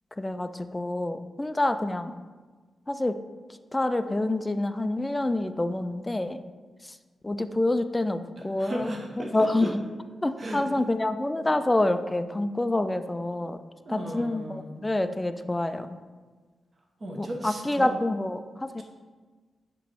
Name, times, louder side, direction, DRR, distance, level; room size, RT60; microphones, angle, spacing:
voice 1, 0.2-2.2 2.9-3.2 3.5-6.4 6.8-7.0 7.2-8.9 9.2-9.8 10.2-13.6 13.9-16.0 17.2-18.8, left 1 dB, 15° left, 10 dB, 0.4 m, -27 dB
voice 2, 8.6-9.7 10.4-10.6 13.9-14.7 17.0-17.9, right 1 dB, 40° right, 0 dB, 1.0 m, -35 dB
8.0 x 3.0 x 6.1 m, 1.4 s
wide cardioid pair, 110°, 0 cm